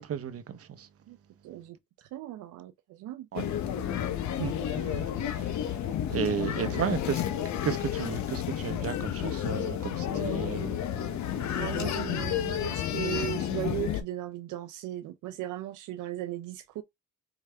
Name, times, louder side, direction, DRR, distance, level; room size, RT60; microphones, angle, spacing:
voice 1, 0.1-0.9 3.3-3.5 4.4-5.1 6.1-7.2 7.6-11.5, right 8 dB, 50° right, 0.8 m, -34 dB
voice 2, 1.4-1.8 2.1-3.3 6.2-6.3 6.6-6.9 11.5-16.8, right 14 dB, 80° right, 0.5 m, -37 dB
sound 1, 3.3-14.0, left 10 dB, 70° left, 0.8 m, -31 dB
4.8 x 3.3 x 3.3 m
cardioid pair, 90°, 30 cm